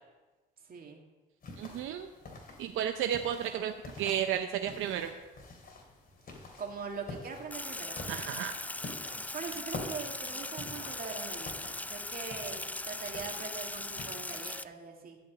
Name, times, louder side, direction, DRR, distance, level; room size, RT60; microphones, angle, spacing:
voice 1, 0.6-1.0 6.6-8.0 9.1-15.2, right 5 dB, 50° right, 1 dB, 2.2 m, -42 dB
sound 1, 1.4-14.1, left 3 dB, 50° left, 2.8 m, -48 dB
voice 2, 1.6-2.1 2.6-5.1 8.1-8.6, right 10 dB, 85° right, 6 dB, 0.6 m, -33 dB
Sink (filling or washing), 7.5-14.6, left 2 dB, 10° left, 0.3 m, -39 dB
12.5 x 5.3 x 8.2 m, 1.2 s
cardioid pair, 90°, 20 cm